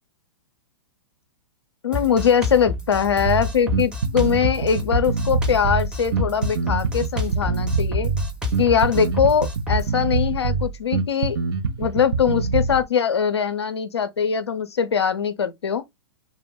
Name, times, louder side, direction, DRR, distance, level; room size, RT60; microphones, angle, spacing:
voice 1, 1.8-8.1 8.6-11.4 11.8-15.8, left 7 dB, 85° left, 0.4 m, -22 dB
Drum kit, 1.9-9.9, left 3 dB, 5° right, 0.7 m, -29 dB
Bass guitar, 3.2-12.8, right 4 dB, 70° right, 0.6 m, -25 dB
2.1 x 2.1 x 3.4 m
hypercardioid pair, 110°, 14 cm